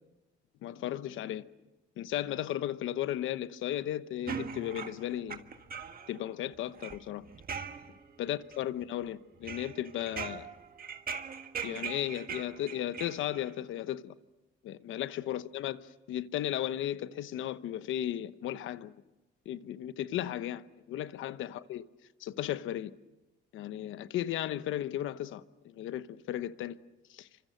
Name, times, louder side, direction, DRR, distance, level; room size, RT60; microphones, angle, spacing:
voice 1, 0.6-1.4 2.0-5.4 6.1-7.2 8.2-10.5 11.6-14.1 14.6-18.9 19.4-21.8 22.2-22.9 23.5-26.8 27.1-27.3, left 12 dB, 85° left, 1.0 m, -35 dB
sound 1, 4.3-6.2 6.5-8.2 8.5-9.0 9.4-13.5, right 6 dB, 45° right, 1.7 m, -41 dB
29.5 x 25.5 x 6.5 m
cardioid pair, 90°, 20 cm